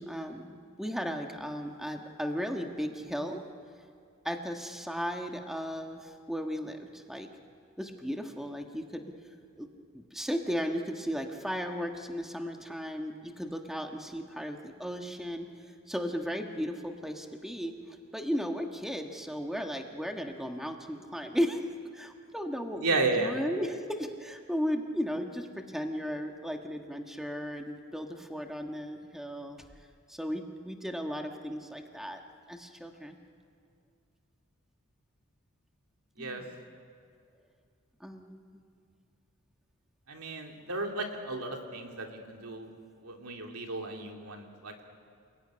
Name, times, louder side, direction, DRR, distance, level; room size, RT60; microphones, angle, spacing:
voice 1, 0.0-3.4 4.2-7.3 7.8-9.1 9.6-9.7 9.9-21.6 21.9-29.7 30.1-32.2 32.5-33.2 36.2-36.5 38.0-38.4, equal, ahead, 3 dB, 1.4 m, -35 dB
voice 2, 22.8-23.3 36.2-36.4 40.1-42.7 43.0-44.9, right 3 dB, 75° right, 2 dB, 3.0 m, -33 dB
29.5 x 19.5 x 9.7 m, 2.3 s
head